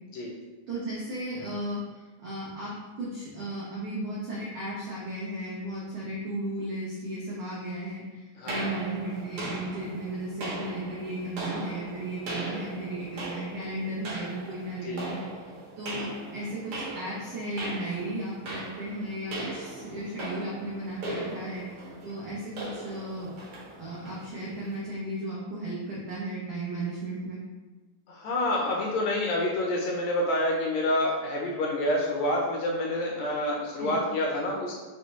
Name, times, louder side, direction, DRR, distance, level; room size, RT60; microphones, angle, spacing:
voice 1, 0.7-15.3 15.8-23.3 23.8-27.4 33.8-34.0, right 1 dB, 85° right, -6 dB, 1.1 m, -35 dB
sound 1, 8.5-24.8, right 2 dB, 65° right, 1.5 m, -39 dB
voice 2, 28.1-34.7, left 1 dB, 80° left, -1 dB, 1.6 m, -28 dB
5.5 x 2.2 x 3.0 m, 1.3 s
omnidirectional pair, 3.3 m